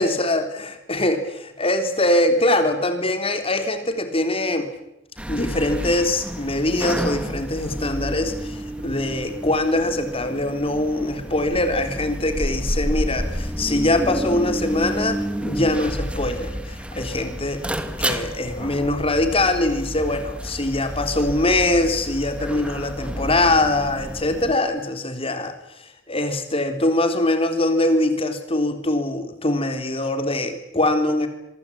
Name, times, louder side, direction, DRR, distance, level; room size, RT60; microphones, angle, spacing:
voice 1, 0.0-4.7 5.3-17.6 18.0-25.5 26.1-31.3, left 1 dB, 30° left, 7 dB, 3.7 m, -23 dB
sound 1, 5.2-24.5, equal, 5° right, 2.2 m, -30 dB
26.0 x 24.5 x 8.7 m, 0.86 s
head